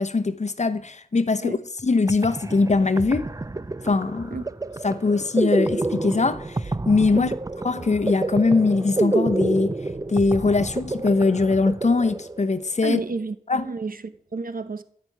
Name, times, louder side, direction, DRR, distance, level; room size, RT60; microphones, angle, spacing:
voice 1, 0.0-1.6 1.8-3.3 3.8-4.4 4.8-7.3 7.6-9.7 10.1-13.0 13.5-13.6, left 3 dB, 45° left, 0.9 m, -21 dB
sound 1, 1.8-12.7, right 2 dB, 20° right, 0.6 m, -29 dB
voice 2, 12.8-14.8, right 4 dB, 60° right, 1.1 m, -31 dB
14.5 x 6.1 x 9.6 m
wide cardioid pair, 85°, 16 cm